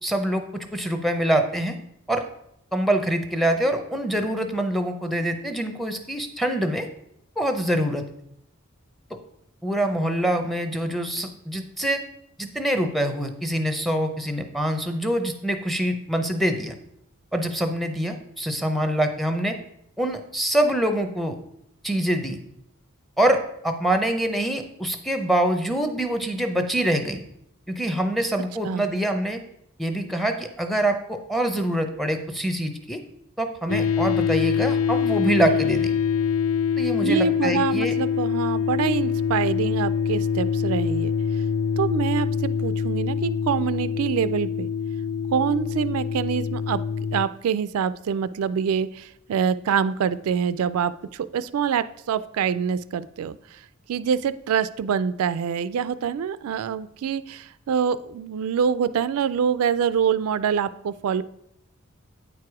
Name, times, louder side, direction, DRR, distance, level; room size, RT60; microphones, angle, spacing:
voice 1, 0.0-1.8 2.1-2.2 2.7-6.9 7.4-8.0 9.6-12.0 12.4-16.8 17.3-19.6 20.0-21.4 21.8-22.4 23.2-27.2 27.7-29.4 29.8-33.0 33.4-35.9 36.8-37.9, right 1 dB, ahead, 6 dB, 0.6 m, -25 dB
sound 1, 33.7-47.3, left 7 dB, 70° left, 0.3 m, -25 dB
voice 2, 37.0-41.1 41.8-42.3 42.6-44.7 45.3-46.8 47.1-53.4 53.9-61.2, right 7 dB, 75° right, 14 dB, 0.3 m, -25 dB
8.9 x 4.7 x 4.8 m, 0.77 s
head